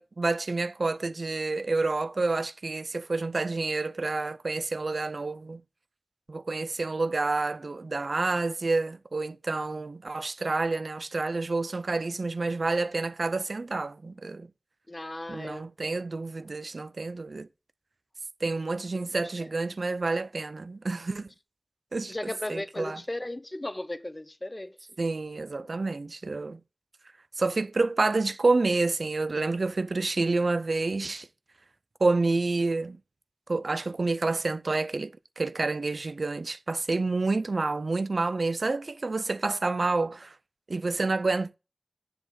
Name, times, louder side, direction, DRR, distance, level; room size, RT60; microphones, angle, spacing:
voice 1, 0.0-5.6 6.3-14.5 15.3-17.5 18.4-21.3 21.9-23.0 25.0-26.6 27.4-31.3 32.0-33.0 33.5-40.3 40.7-41.5, right 3 dB, 90° right, 0.5 m, -29 dB
voice 2, 14.9-15.7 18.9-19.0 22.1-24.9, left 1 dB, 40° left, 0.8 m, -36 dB
7.6 x 6.7 x 7.6 m
wide cardioid pair, 45°, 0 cm